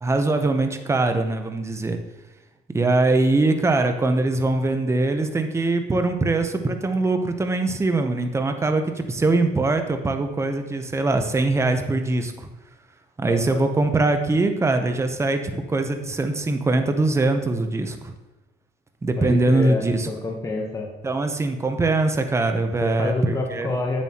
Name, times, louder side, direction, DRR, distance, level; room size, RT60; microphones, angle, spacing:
voice 1, 0.0-2.0 2.7-12.5 13.2-18.1 19.0-20.1 21.0-23.7, right 2 dB, 15° right, 6 dB, 0.7 m, -22 dB
voice 2, 13.2-13.6 19.2-20.9 22.8-24.0, left 2 dB, 20° left, 1 dB, 0.9 m, -28 dB
8.1 x 7.2 x 2.9 m, 1.0 s
cardioid pair, 110°, 17 cm